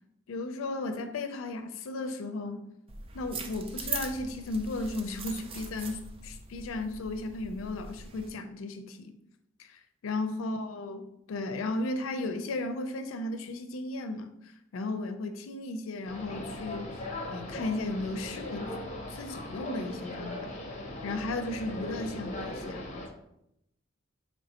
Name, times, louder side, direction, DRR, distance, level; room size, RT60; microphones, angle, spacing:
voice 1, 0.3-2.6 3.1-9.2 9.6-14.3 14.7-16.9 17.3-18.7 19.1-20.5 21.0-23.0, left 2 dB, 80° left, 0.4 m, -35 dB
sound 1, 2.9-8.3, right 4 dB, 30° right, 0.4 m, -41 dB
sound 2, 16.0-23.1, left 1 dB, 35° left, 0.6 m, -39 dB
4.1 x 3.1 x 2.8 m
head